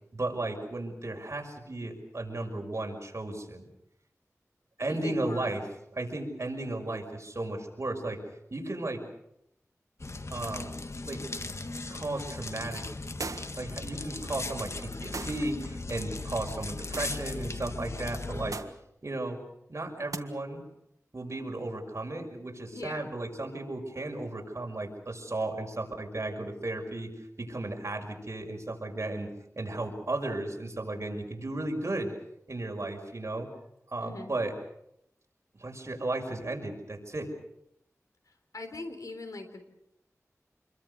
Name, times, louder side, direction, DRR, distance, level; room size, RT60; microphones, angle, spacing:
voice 1, 0.2-3.7 4.8-5.6 5.9-8.2 8.5-9.0 10.3-10.7 11.0-11.2 11.9-12.8 13.6-18.6 19.0-19.4 19.7-20.6 21.1-27.1 27.4-32.1 32.5-33.5 33.9-34.5 35.6-37.3, right 2 dB, 55° right, 2 dB, 5.9 m, -35 dB
voice 2, 4.9-5.5 22.7-23.1 34.0-34.3 38.5-39.6, left 2 dB, 80° left, 7 dB, 3.9 m, -40 dB
sound 1, 10.0-18.5, left 3 dB, 55° left, 1.6 m, -38 dB
sound 2, 13.2-13.7 15.1-15.5 16.9-17.2 18.5-18.8 20.1-20.3, right 3 dB, 80° right, 1.6 m, -38 dB
27.5 x 22.5 x 6.6 m, 0.80 s
wide cardioid pair, 60°, 6 cm